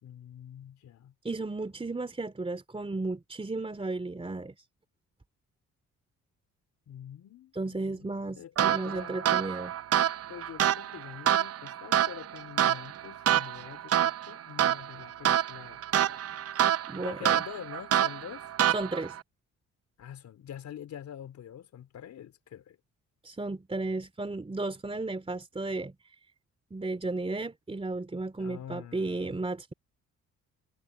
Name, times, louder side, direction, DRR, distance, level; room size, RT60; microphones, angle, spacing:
voice 1, 0.0-1.1 6.9-9.5 10.0-15.8 16.1-16.2 17.0-18.5 20.0-22.8 28.4-29.4, left 9 dB, 70° left, 4.0 m, -45 dB
voice 2, 1.2-4.5 7.5-9.7 16.9-17.2 18.7-19.2 23.2-25.9 26.7-29.7, right 2 dB, 20° right, 3.3 m, -34 dB
sound 1, 8.6-19.2, right 11 dB, 55° right, 0.7 m, -28 dB
cardioid pair, 90°, 30 cm